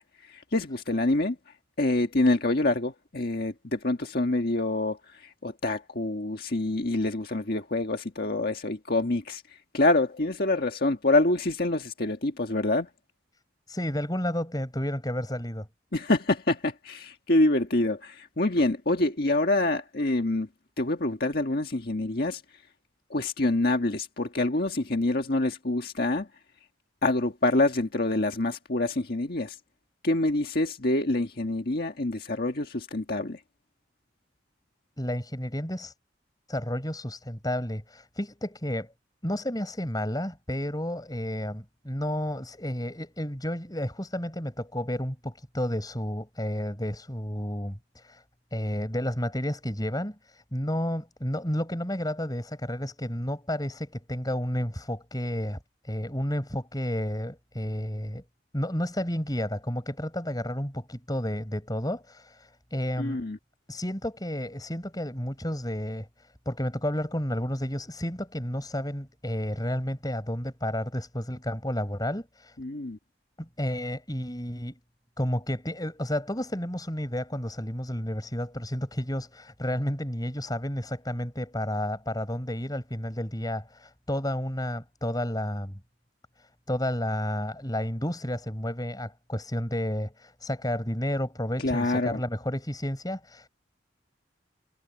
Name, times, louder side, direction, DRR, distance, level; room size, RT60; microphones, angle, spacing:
voice 1, 0.0-12.9 15.9-20.5 20.8-22.4 23.1-26.3 27.0-29.6 30.0-33.4 63.0-63.4 72.6-73.0 91.6-92.2, left 2 dB, 55° left, 1.6 m, -26 dB
voice 2, 13.7-15.7 35.0-35.9 36.5-38.9 39.2-48.2 48.5-55.6 55.8-58.2 58.5-63.2 63.7-72.6 73.4-74.8 75.2-85.8 86.4-93.5, left 1 dB, 20° left, 6.3 m, -31 dB
head